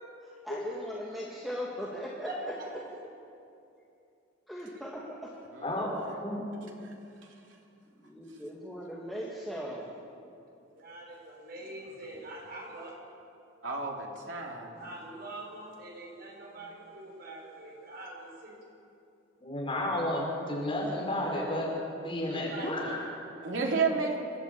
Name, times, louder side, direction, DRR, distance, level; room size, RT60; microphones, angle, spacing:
voice 1, 0.4-2.8 4.5-5.3 6.4-6.7 7.9-9.9, equal, ahead, -5 dB, 2.2 m, -39 dB
voice 2, 5.5-6.2 13.6-14.7 23.4-24.2, right 4 dB, 75° right, 0 dB, 3.3 m, -32 dB
voice 3, 10.8-12.9 14.8-18.1 18.4-18.6 22.5-22.7, right 2 dB, 55° right, -2 dB, 6.5 m, -44 dB
voice 4, 19.4-21.8 22.0-23.2, left 1 dB, 30° left, -2 dB, 5.4 m, -32 dB
27.5 x 12.5 x 8.5 m, 2.6 s
head